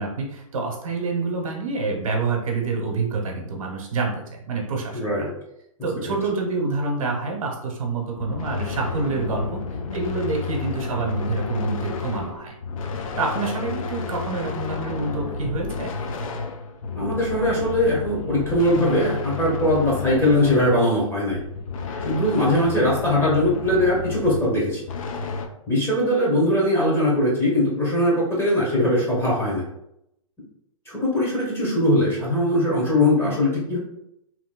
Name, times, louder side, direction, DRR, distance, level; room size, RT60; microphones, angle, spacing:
voice 1, 0.0-5.3 5.8-9.6 9.9-12.5 13.2-15.9, right 3 dB, 75° right, 1 dB, 0.9 m, -27 dB
voice 2, 4.9-5.3 6.0-6.1 16.9-21.4 22.0-24.8 25.7-29.6 30.9-33.8, left 1 dB, 10° left, -6 dB, 1.2 m, -21 dB
sound 1, 8.2-25.5, left 4 dB, 75° left, 0.5 m, -31 dB
3.1 x 3.0 x 2.2 m, 0.80 s
hypercardioid pair, 135°, 18 cm